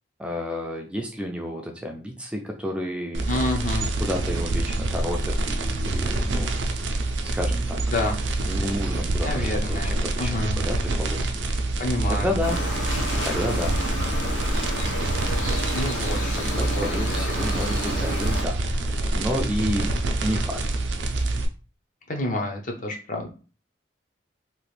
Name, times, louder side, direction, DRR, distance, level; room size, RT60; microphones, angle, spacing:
voice 1, 0.2-3.3 4.0-6.5 7.2-7.8 8.5-11.4 12.1-12.6 13.2-13.8 16.5-20.6, left 1 dB, 5° right, 1 dB, 0.4 m, -31 dB
sound 1, 3.1-21.5, right 2 dB, 85° right, 0.5 m, -26 dB
voice 2, 3.3-3.9 7.9-8.2 9.2-10.6 11.8-12.3 15.7-16.4 16.7-17.5 22.1-23.3, left 1 dB, 45° left, 2 dB, 0.6 m, -29 dB
sound 2, 12.4-18.4, left 1 dB, 90° left, 0.9 m, -31 dB
2.9 x 2.4 x 3.1 m, 0.36 s
head